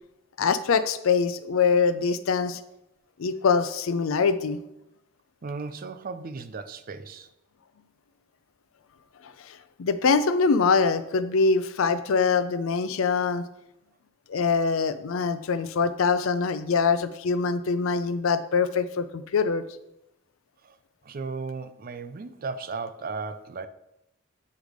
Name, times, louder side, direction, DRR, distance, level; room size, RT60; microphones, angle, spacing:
voice 1, 0.4-2.6 3.2-4.6 9.2-13.5 14.3-19.6, left 5 dB, 75° left, 0.5 m, -24 dB
voice 2, 5.4-7.3 20.6-20.8 21.0-23.7, right 4 dB, 45° right, 0.4 m, -35 dB
8.1 x 3.3 x 5.0 m
head